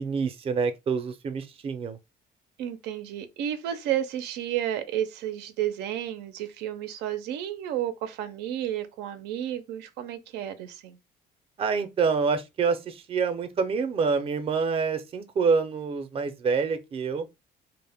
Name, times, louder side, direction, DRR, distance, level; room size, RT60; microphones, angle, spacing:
voice 1, 0.0-2.0 11.6-17.3, right 5 dB, 35° right, 0.5 m, -27 dB
voice 2, 2.6-11.0, right 11 dB, 90° right, 0.4 m, -32 dB
2.1 x 2.0 x 3.3 m
cardioid pair, 110°, 17 cm